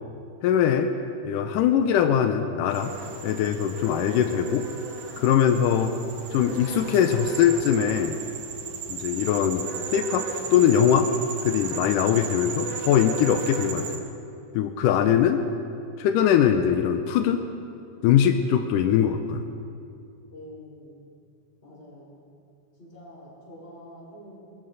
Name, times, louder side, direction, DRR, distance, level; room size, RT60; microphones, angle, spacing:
voice 1, 0.4-0.9 1.2-2.9 3.2-4.7 5.2-6.0 6.3-8.2 8.9-9.7 9.9-11.1 11.4-13.9 14.5-15.4 16.0-17.4 18.0-19.4, left 9 dB, 90° left, 7 dB, 2.2 m, -21 dB
sound 1, 2.7-14.0, right 5 dB, 60° right, 1.3 m, -35 dB
voice 2, 20.3-21.1 21.6-22.3 22.8-24.4, equal, 20° left, -7 dB, 5.1 m, -46 dB
22.0 x 14.5 x 4.0 m, 2.5 s
omnidirectional pair, 3.8 m